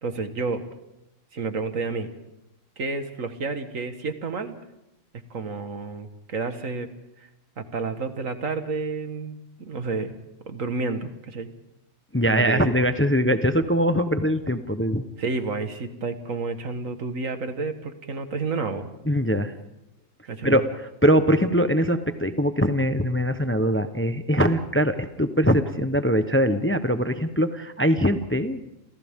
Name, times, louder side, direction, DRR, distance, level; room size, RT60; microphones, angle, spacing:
voice 1, 0.0-0.6 1.3-2.1 2.8-4.5 5.3-6.9 7.2-7.3 7.6-10.1 10.5-11.5 12.3-12.7 15.2-18.9 20.3-20.6, right 4 dB, 75° right, 8 dB, 2.0 m, -30 dB
voice 2, 12.1-15.0 19.1-19.5 20.4-20.6 21.0-28.7, equal, 10° left, 9 dB, 0.8 m, -22 dB
29.0 x 28.0 x 3.7 m, 0.89 s
omnidirectional pair, 1.4 m